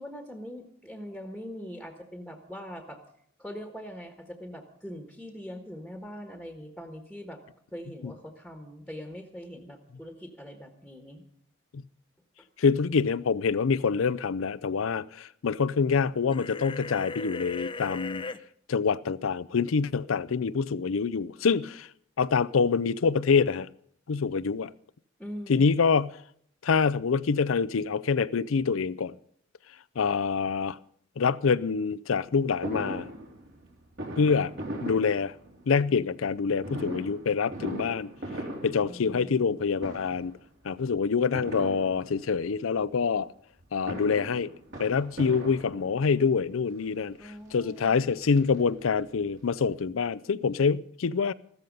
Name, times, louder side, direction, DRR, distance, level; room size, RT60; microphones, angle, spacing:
voice 1, 0.0-3.0 3.4-7.4 7.7-11.2 25.2-25.9 38.8-39.5 47.2-47.9, equal, ahead, 1.4 m, -42 dB
voice 2, 12.6-18.3 18.7-21.9 22.2-23.7 24.1-24.7 25.5-26.1 26.6-29.1 30.0-30.8 31.2-33.1 34.2-34.5 34.8-35.3 35.7-38.1 38.6-40.3 40.6-43.3 43.7-44.5 44.8-51.3, left 5 dB, 85° left, 0.5 m, -26 dB
sound 1, 16.3-18.4, left 3 dB, 25° left, 0.6 m, -37 dB
Fireworks, 32.6-35.8 36.6-39.5 39.8-40.4 41.3-42.4 43.6-46.2 47.0-47.1 47.4-47.5 47.8-49.1 49.4-49.5 49.7-49.8, right 1 dB, 65° right, 3.4 m, -39 dB
14.5 x 13.5 x 5.3 m
head